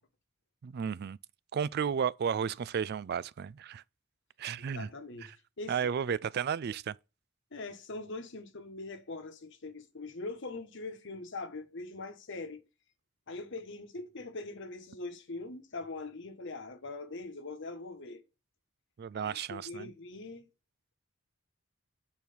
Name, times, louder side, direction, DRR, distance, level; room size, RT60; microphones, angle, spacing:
voice 1, 0.6-1.2 1.5-3.8 4.4-4.9 5.2-5.3 5.7-6.9 19.0-19.9, right 7 dB, 50° right, 0.3 m, -33 dB
voice 2, 4.6-6.2 7.5-12.6 13.3-18.2 19.1-20.5, left 3 dB, 60° left, 1.2 m, -42 dB
8.7 x 4.6 x 5.3 m
head